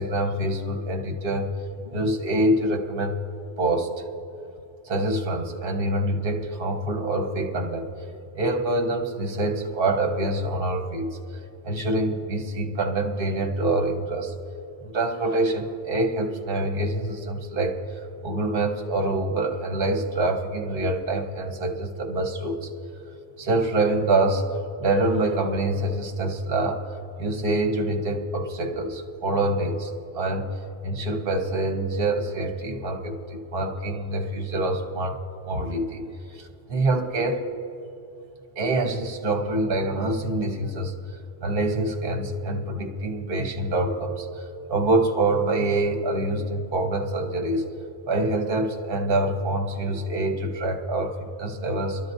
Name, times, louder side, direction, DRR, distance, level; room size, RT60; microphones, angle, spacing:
voice 1, 0.0-1.5 1.8-3.2 3.6-3.9 4.9-7.9 8.3-11.1 11.6-14.3 14.8-17.8 18.2-22.7 23.4-24.4 24.8-26.8 27.2-30.4 30.8-35.2 35.4-36.0 36.3-37.4 38.6-41.0 41.4-44.3 44.7-47.6 48.1-52.0, right 2 dB, 50° right, 3 dB, 1.1 m, -25 dB
24.5 x 12.0 x 2.6 m, 2.7 s
omnidirectional pair, 1.2 m